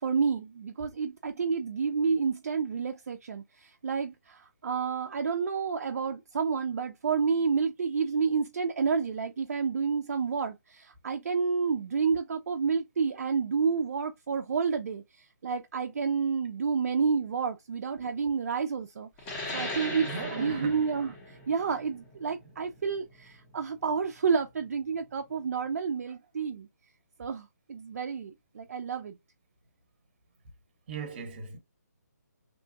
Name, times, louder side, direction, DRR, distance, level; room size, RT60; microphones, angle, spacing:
voice 1, 0.0-26.7 27.2-29.2, right 5 dB, 55° right, 0.4 m, -30 dB
sound 1, 19.2-24.3, left 2 dB, 15° left, 0.7 m, -39 dB
voice 2, 20.1-20.8 30.9-31.6, right 5 dB, 35° right, 0.8 m, -38 dB
2.9 x 2.3 x 2.6 m
figure-of-eight pair, 155°, 10 cm